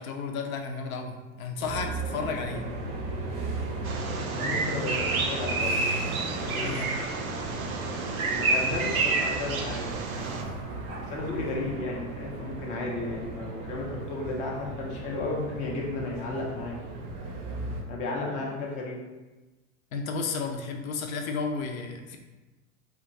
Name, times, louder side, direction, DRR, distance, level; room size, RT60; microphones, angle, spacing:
voice 1, 0.0-2.6 6.5-7.0 19.9-22.2, left 4 dB, 75° left, 4 dB, 0.5 m, -33 dB
sound 1, 1.6-17.8, right 2 dB, 35° right, 0.5 m, -36 dB
Bird vocalization bird call bird song, 3.8-10.4, right 3 dB, 85° right, 0.5 m, -29 dB
voice 2, 4.3-5.9 6.4-7.0 8.3-9.9 11.1-16.8 17.9-19.0, left 2 dB, 20° left, -2 dB, 0.4 m, -34 dB
2.8 x 2.3 x 2.6 m, 1.2 s
hypercardioid pair, 105°, 42 cm